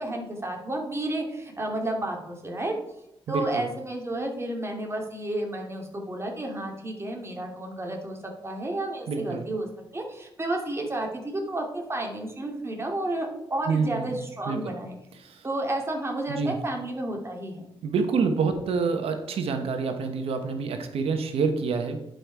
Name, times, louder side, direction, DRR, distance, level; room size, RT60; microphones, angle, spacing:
voice 1, 0.0-2.7 3.3-8.2 8.4-14.9 15.4-17.6, right 1 dB, 25° right, 1 dB, 2.7 m, -31 dB
voice 2, 3.3-3.6 9.1-9.4 13.7-14.2 14.4-14.7 15.2-15.4 16.3-16.5 17.8-22.0, right 5 dB, 85° right, 7 dB, 1.1 m, -27 dB
10.5 x 5.3 x 4.6 m, 0.83 s
cardioid pair, 60°, 10 cm